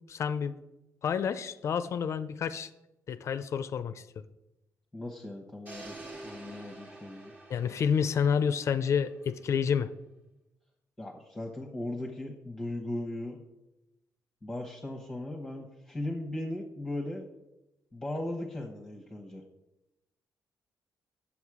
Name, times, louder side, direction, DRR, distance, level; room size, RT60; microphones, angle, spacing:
voice 1, 0.1-0.6 1.0-2.7 3.1-4.3 7.5-9.9, left 7 dB, 50° left, 12 dB, 0.4 m, -29 dB
voice 2, 4.9-5.9 6.2-7.3 11.0-13.4 14.4-17.2 17.9-19.4, left 1 dB, 5° left, -1 dB, 1.0 m, -37 dB
sound 1, 5.6-9.7, right 2 dB, 30° right, 1.4 m, -48 dB
9.0 x 7.2 x 4.8 m, 0.94 s
cardioid pair, 145°, 6 cm